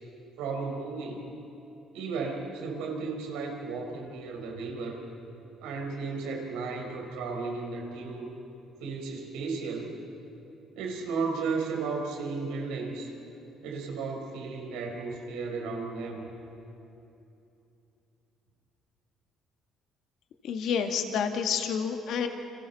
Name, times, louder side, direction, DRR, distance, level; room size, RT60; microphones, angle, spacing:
voice 1, 0.4-1.3 1.9-5.0 5.6-8.3 8.8-10.0 10.7-13.1 13.6-16.2, right 4 dB, 85° right, 1 dB, 4.1 m, -34 dB
voice 2, 20.4-22.3, left 7 dB, 70° left, 5 dB, 1.9 m, -29 dB
29.5 x 26.0 x 4.4 m, 2.9 s
supercardioid pair, 70°, 0 cm